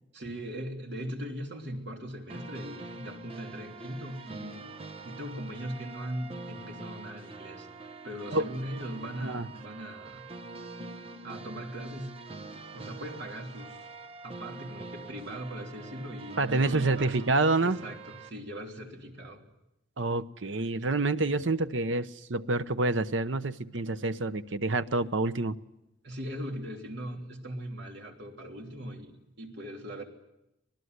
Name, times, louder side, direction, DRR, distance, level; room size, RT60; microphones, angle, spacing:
voice 1, 0.1-4.7 5.0-7.7 8.0-10.3 11.2-12.2 12.7-13.9 14.2-17.3 17.6-19.4 26.0-30.1, equal, 60° right, 2 dB, 3.2 m, -40 dB
sound 1, 2.3-18.3, right 3 dB, 30° right, 1.1 m, -45 dB
voice 2, 16.4-17.8 20.0-25.6, right 2 dB, 80° right, 11 dB, 0.9 m, -27 dB
25.5 x 19.5 x 8.1 m, 0.90 s
head